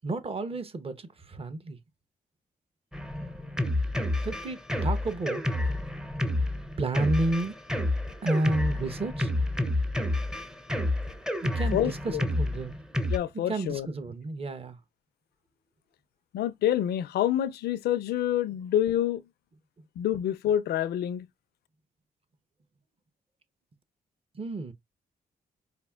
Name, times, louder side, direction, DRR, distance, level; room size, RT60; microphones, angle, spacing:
voice 1, 0.0-1.8 4.2-5.6 6.8-7.6 8.2-9.3 11.4-12.7 13.3-14.8 24.3-24.7, right 2 dB, 35° right, 0.8 m, -31 dB
Drum kit, 2.9-13.2, left 1 dB, 5° right, 0.5 m, -29 dB
voice 2, 11.7-12.2 13.1-13.9 16.3-19.2 20.0-21.3, left 11 dB, 80° left, 0.4 m, -27 dB
5.1 x 2.4 x 2.3 m
cardioid pair, 65°, 16 cm